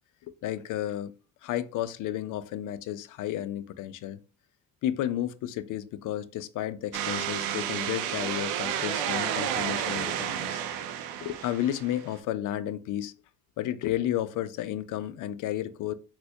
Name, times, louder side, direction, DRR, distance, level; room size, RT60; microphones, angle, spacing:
voice 1, 0.3-1.1 1.4-4.2 4.8-10.6 11.2-13.1 13.6-15.9, left 12 dB, 50° left, 0.4 m, -32 dB
sound 1, 6.9-12.1, right 9 dB, 75° right, 0.5 m, -31 dB
4.0 x 2.2 x 2.7 m
hypercardioid pair, 50°, 41 cm